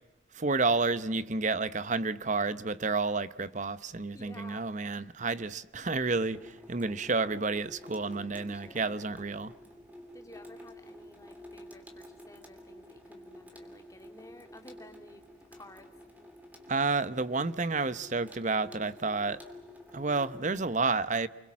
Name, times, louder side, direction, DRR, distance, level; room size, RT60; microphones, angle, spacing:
voice 1, 0.3-9.5 16.7-19.4 19.9-21.3, right 3 dB, 40° right, 0.8 m, -30 dB
voice 2, 4.1-4.7 8.2-9.0 10.1-16.0, left 1 dB, 15° left, 2.4 m, -53 dB
Water tap faucet / Sink (filling or washing), 6.3-20.6, left 1 dB, 10° right, 3.0 m, -51 dB
30.0 x 23.0 x 7.5 m
head